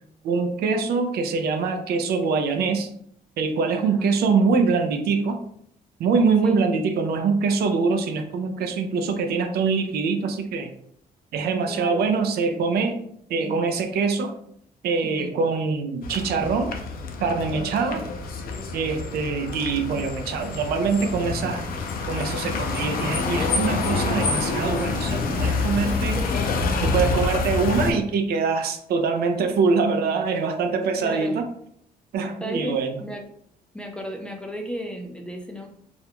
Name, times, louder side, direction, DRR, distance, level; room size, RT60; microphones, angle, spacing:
voice 1, 0.2-2.9 3.4-5.4 6.0-10.7 11.3-13.0 13.3-14.3 14.8-16.7 17.2-18.0 18.7-21.6 22.1-26.2 26.8-31.4 32.1-33.0, right 4 dB, 75° right, 6 dB, 0.4 m, -24 dB
voice 2, 3.8-4.1 6.4-6.6 11.7-12.1 15.0-15.3 17.7-18.0 25.8-26.8 30.7-30.8 31.0-31.4 32.4-33.3 33.7-35.7, equal, 5° left, 2 dB, 0.3 m, -35 dB
sound 1, 16.0-27.9, left 4 dB, 65° left, 0.4 m, -27 dB
2.4 x 2.1 x 2.8 m, 0.67 s
cardioid pair, 140°, 16 cm